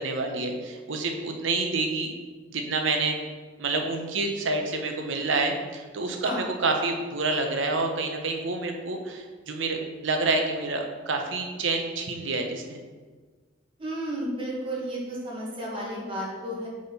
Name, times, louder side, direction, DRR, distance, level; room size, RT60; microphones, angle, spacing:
voice 1, 0.0-2.1 2.5-3.2 3.6-12.8, right 3 dB, 80° right, 3 dB, 0.8 m, -28 dB
voice 2, 13.8-16.7, right 1 dB, 25° right, -5 dB, 1.5 m, -32 dB
4.9 x 4.3 x 5.4 m, 1.4 s
head